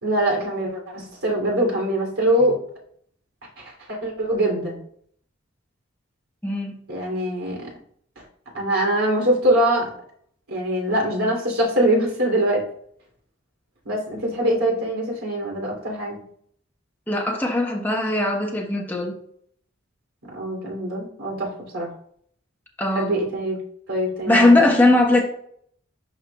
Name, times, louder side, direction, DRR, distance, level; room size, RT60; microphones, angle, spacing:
voice 1, 0.0-2.5 3.6-4.8 6.9-7.7 8.5-9.9 10.5-12.6 13.8-16.2 20.3-21.9 22.9-23.6 23.9-24.8, right 1 dB, 85° right, -2 dB, 3.1 m, -23 dB
voice 2, 6.4-6.8 17.1-19.1 22.8-23.1 24.3-25.2, left 2 dB, 10° left, 0 dB, 1.1 m, -19 dB
11.5 x 4.7 x 2.4 m, 0.64 s
head